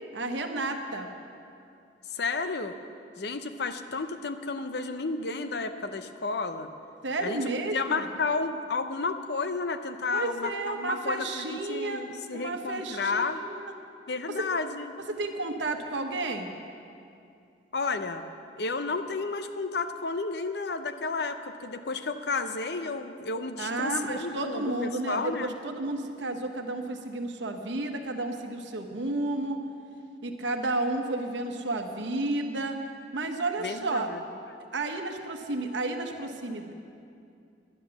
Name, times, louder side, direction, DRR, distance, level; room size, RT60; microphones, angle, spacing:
voice 1, 0.1-1.1 7.0-8.1 10.1-12.0 12.3-13.7 14.3-14.5 15.1-16.5 23.6-29.6 30.2-32.8 33.1-34.1 34.7-36.7, right 2 dB, 90° right, 4 dB, 1.1 m, -32 dB
voice 2, 2.1-2.8 3.2-6.7 7.2-13.4 14.1-14.9 17.7-18.3 18.5-25.5 33.6-34.2, left 4 dB, 65° left, 9 dB, 0.7 m, -32 dB
11.0 x 10.5 x 7.0 m, 2.5 s
head